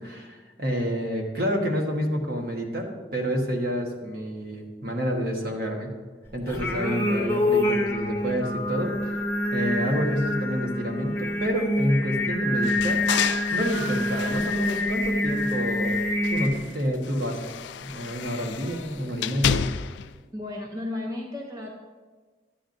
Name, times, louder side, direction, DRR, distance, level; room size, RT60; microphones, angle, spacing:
voice 1, 0.0-5.9 6.3-9.2 9.5-13.0 13.5-16.0 16.3-17.5 17.8-19.7, equal, 55° right, 1 dB, 1.3 m, -28 dB
Singing, 6.5-16.5, left 1 dB, 10° left, 0.8 m, -26 dB
voice 2, 6.7-7.4 20.3-21.7, left 1 dB, 20° right, 1 dB, 0.6 m, -34 dB
sound 1, 12.6-15.8 16.2-20.1, left 8 dB, 80° left, 0.3 m, -32 dB
11.5 x 9.2 x 2.6 m, 1.4 s
head